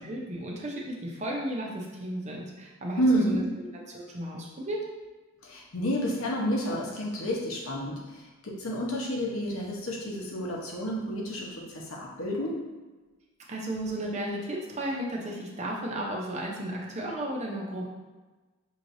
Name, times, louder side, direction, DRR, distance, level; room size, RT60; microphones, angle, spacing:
voice 1, 0.0-4.8 13.5-17.9, right 1 dB, 30° right, -2 dB, 0.7 m, -34 dB
voice 2, 3.0-3.4 5.4-12.6, equal, 70° left, -2 dB, 0.9 m, -30 dB
5.7 x 3.1 x 2.6 m, 1.3 s
head